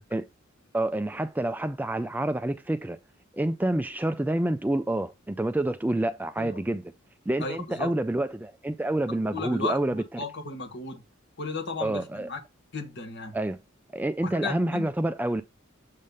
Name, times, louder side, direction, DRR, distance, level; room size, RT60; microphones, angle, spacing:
voice 1, 0.7-3.0 3.3-6.8 7.3-10.0 11.8-12.3 13.3-13.6 13.9-15.4, right 1 dB, 10° right, 0.3 m, -28 dB
voice 2, 7.4-7.9 9.3-11.0 11.4-12.4 12.7-13.4 14.2-14.9, left 4 dB, 60° left, 1.6 m, -35 dB
7.5 x 3.5 x 5.4 m
head